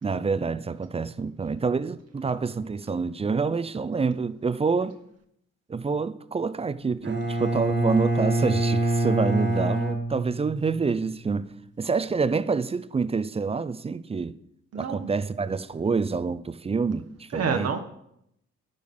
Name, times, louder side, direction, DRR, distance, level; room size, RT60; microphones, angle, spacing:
voice 1, 0.0-5.0 5.7-11.5 11.8-14.4 14.7-17.7, right 4 dB, 20° right, 0.5 m, -27 dB
Bowed string instrument, 7.0-10.9, right 2 dB, 40° right, 1.5 m, -25 dB
voice 2, 17.3-17.8, right 6 dB, 55° right, 1.1 m, -28 dB
10.0 x 6.6 x 5.4 m
cardioid pair, 90°, 30 cm